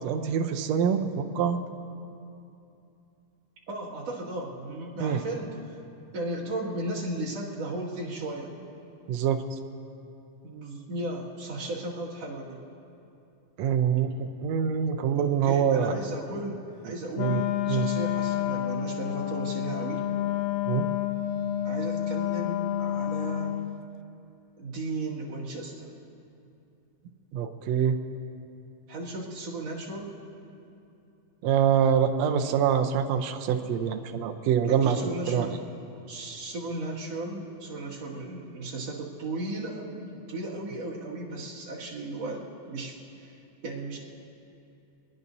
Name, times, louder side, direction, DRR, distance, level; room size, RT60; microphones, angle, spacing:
voice 1, 0.0-1.6 5.0-5.2 9.1-9.6 13.6-15.9 17.2-17.4 17.7-17.9 20.7-20.9 27.3-28.0 31.4-35.0 35.3-35.6, right 8 dB, 75° right, 5 dB, 1.6 m, -25 dB
voice 2, 3.7-5.7 6.1-8.5 10.4-12.6 15.2-20.0 21.6-23.6 24.6-25.9 28.9-30.1 34.7-35.6 36.1-43.3 43.6-44.0, right 2 dB, 55° right, -5 dB, 3.0 m, -35 dB
Wind instrument woodwind instrument, 17.1-23.8, left 11 dB, 85° left, 1.6 m, -29 dB
24.0 x 18.5 x 2.7 m, 2.7 s
omnidirectional pair, 3.8 m